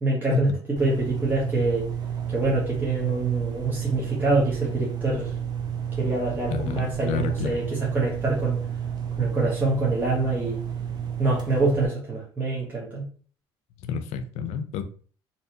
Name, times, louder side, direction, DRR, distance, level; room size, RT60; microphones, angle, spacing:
voice 1, 0.0-0.5 0.8-1.9 2.3-5.3 6.0-8.6 9.2-10.6 11.2-13.1, right 2 dB, 15° right, -5 dB, 0.8 m, -25 dB
sound 1, 0.8-11.9, right 8 dB, 35° right, 0.5 m, -31 dB
voice 2, 6.5-7.6 13.8-14.8, left 5 dB, 65° left, 9 dB, 0.4 m, -29 dB
2.7 x 2.1 x 2.7 m, 0.43 s
supercardioid pair, 85°, 12 cm